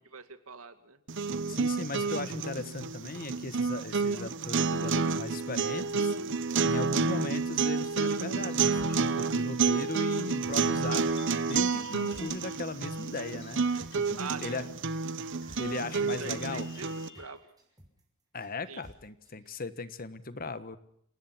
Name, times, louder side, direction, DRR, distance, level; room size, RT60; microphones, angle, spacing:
voice 1, 0.1-1.0 14.2-14.6 16.0-17.4 18.7-18.8, right 5 dB, 80° right, 9 dB, 2.3 m, -43 dB
sound 1, 1.1-17.1, right 4 dB, 60° right, 0.9 m, -30 dB
voice 2, 1.5-11.0 11.4-14.7 15.6-16.7 18.3-20.8, left 3 dB, 40° left, 12 dB, 1.4 m, -38 dB
sound 2, 8.3-17.4, left 5 dB, 60° left, 5.5 m, -54 dB
sound 3, 8.7-19.6, equal, 20° right, 5.7 m, -56 dB
28.0 x 19.0 x 6.0 m, 0.70 s
head